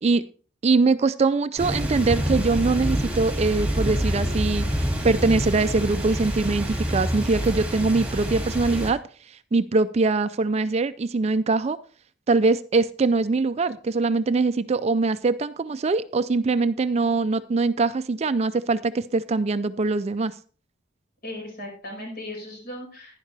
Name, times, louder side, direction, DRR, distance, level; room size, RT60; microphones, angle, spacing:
voice 1, 0.6-9.0 9.3-11.8 12.3-20.3, right 3 dB, 35° right, 13 dB, 0.4 m, -23 dB
sound 1, 1.6-8.9, equal, 10° right, 2.5 m, -27 dB
voice 2, 21.2-23.2, left 1 dB, 50° left, -1 dB, 5.5 m, -37 dB
11.0 x 10.5 x 3.3 m, 0.40 s
head